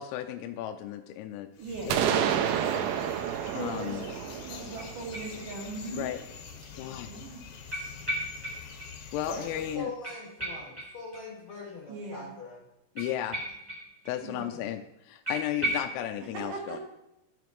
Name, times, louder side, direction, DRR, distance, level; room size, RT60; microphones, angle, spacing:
voice 1, 0.0-1.5 1.9-2.3 3.6-4.1 5.9-6.2 6.8-7.2 9.1-9.9 13.0-13.4 14.1-16.8, left 11 dB, 90° left, 7 dB, 3.3 m, -34 dB
sound 1, 1.5-9.8, left 7 dB, 75° left, 3.0 m, -46 dB
voice 2, 1.6-2.6 3.5-6.1 7.1-7.4 11.9-12.4 14.2-14.5 16.3-16.8, right 3 dB, 60° right, 0 dB, 2.2 m, -40 dB
sound 2, 1.9-5.7, right 9 dB, 80° right, 2.8 m, -30 dB
sound 3, 4.8-5.9 6.2-6.3 7.7-8.9 9.1-9.2 9.5-9.6 10.0-11.5 13.0-14.2 14.4-14.5 14.8-14.9 15.2-16.0, right 1 dB, 15° right, 0.9 m, -36 dB
voice 3, 6.7-7.3 9.2-12.7 14.3-14.6, left 2 dB, 50° left, -3 dB, 2.2 m, -42 dB
13.0 x 6.9 x 3.1 m, 0.90 s
omnidirectional pair, 5.9 m